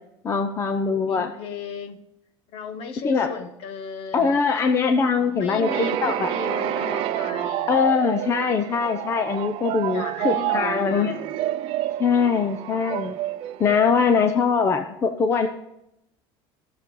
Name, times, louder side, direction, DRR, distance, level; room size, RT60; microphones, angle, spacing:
voice 1, 0.2-1.3 3.0-3.4 4.1-6.3 7.7-11.2 12.0-13.2 13.6-15.5, left 5 dB, 20° left, 7 dB, 0.7 m, -22 dB
voice 2, 0.9-2.0 2.5-4.4 5.4-7.7 9.9-11.3, left 5 dB, 50° left, 9 dB, 1.3 m, -35 dB
sound 1, 5.6-14.4, right 13 dB, 50° right, 0.7 m, -29 dB
15.5 x 6.8 x 5.4 m, 0.83 s
cardioid pair, 170°, 12 cm